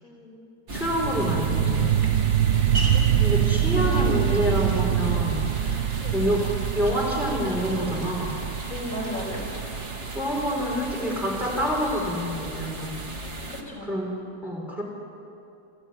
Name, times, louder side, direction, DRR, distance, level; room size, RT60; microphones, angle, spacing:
voice 1, 0.0-0.3 2.9-3.3 3.6-4.4 5.6-6.2 8.7-9.5 13.5-13.9, left 1 dB, 60° left, -2 dB, 5.6 m, -37 dB
voice 2, 0.7-1.8 3.2-5.5 6.1-6.4 6.7-8.4 10.1-13.0 13.9-14.1 14.4-14.8, equal, ahead, -3 dB, 4.7 m, -27 dB
sound 1, 0.7-13.6, right 2 dB, 45° right, 2.3 m, -37 dB
sound 2, 1.0-12.1, right 10 dB, 85° right, 1.3 m, -25 dB
sound 3, 1.2-12.4, right 1 dB, 65° right, 5.2 m, -42 dB
28.5 x 14.0 x 9.4 m, 2.6 s
omnidirectional pair, 1.7 m